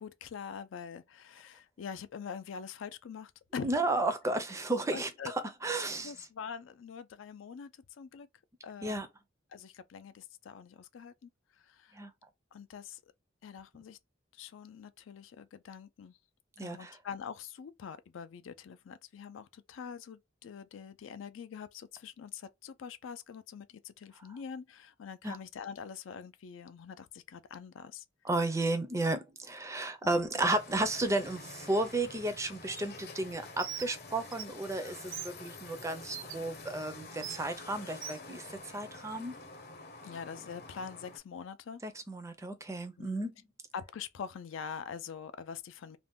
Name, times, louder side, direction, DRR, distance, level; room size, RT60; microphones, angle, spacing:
voice 1, 0.0-3.7 4.9-5.3 6.0-8.3 8.6-9.0 9.5-11.3 11.6-12.0 12.5-13.0 13.4-14.0 14.3-16.2 16.6-28.0 30.0-30.2 40.0-41.8 43.0-43.2 43.7-46.0, left 6 dB, 75° left, 0.4 m, -44 dB
voice 2, 3.6-6.1 8.8-9.1 11.9-12.1 16.6-17.0 25.2-25.4 28.2-38.5 38.7-39.3 41.8-43.3, right 2 dB, 15° right, 0.4 m, -33 dB
sound 1, 30.4-41.2, left 3 dB, 50° left, 0.8 m, -48 dB
Bird, 33.6-33.9 34.3-34.4 35.1-35.3 36.1-36.3 37.2-37.4 38.0-38.2, right 10 dB, 75° right, 0.5 m, -40 dB
2.5 x 2.1 x 3.4 m
head